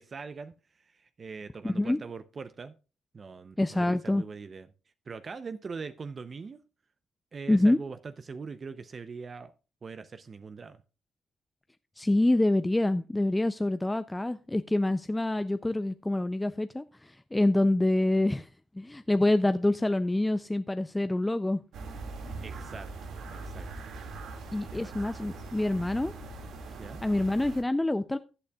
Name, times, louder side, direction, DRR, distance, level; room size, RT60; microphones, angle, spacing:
voice 1, 0.0-2.7 3.1-4.7 5.1-6.6 7.3-9.5 9.8-10.8 22.1-23.7 24.7-25.3 26.8-27.0, right 5 dB, 40° right, 0.6 m, -42 dB
voice 2, 1.6-2.0 3.6-4.2 7.5-7.8 12.0-18.5 18.8-21.6 24.5-26.1 27.0-28.2, left 1 dB, 10° left, 0.4 m, -26 dB
sound 1, 21.7-27.6, right 3 dB, 75° right, 2.1 m, -41 dB
15.0 x 8.4 x 2.3 m
cardioid pair, 90°, 0 cm